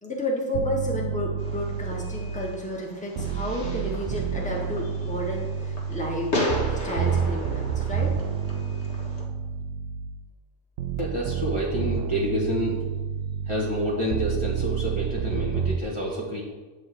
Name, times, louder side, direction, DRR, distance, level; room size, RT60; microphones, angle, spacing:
voice 1, 0.0-6.4 6.8-8.1, left 1 dB, 5° left, -3 dB, 1.9 m, -31 dB
sound 1, 0.5-2.7 3.2-10.3 10.8-15.8, right 7 dB, 85° right, 1.0 m, -29 dB
Fireworks, 1.4-9.2, left 1 dB, 60° left, 2.0 m, -35 dB
voice 2, 11.0-12.8 13.5-16.4, equal, 25° left, -6 dB, 1.7 m, -28 dB
11.0 x 4.0 x 7.9 m, 1.3 s
omnidirectional pair, 1.3 m